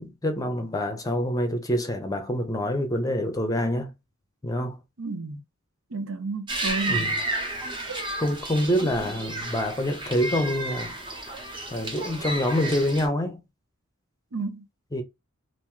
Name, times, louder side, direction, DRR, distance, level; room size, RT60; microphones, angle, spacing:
voice 1, 0.0-3.9 4.4-4.8 6.8-7.2 8.2-10.9 11.7-13.4 14.9-15.0, equal, 15° left, 0.7 m, -26 dB
voice 2, 5.0-5.4 5.9-7.1 14.3-14.6, right 3 dB, 70° right, 0.7 m, -31 dB
sound 1, 6.5-13.1, right 2 dB, 25° right, 1.0 m, -32 dB
2.9 x 2.6 x 3.6 m
head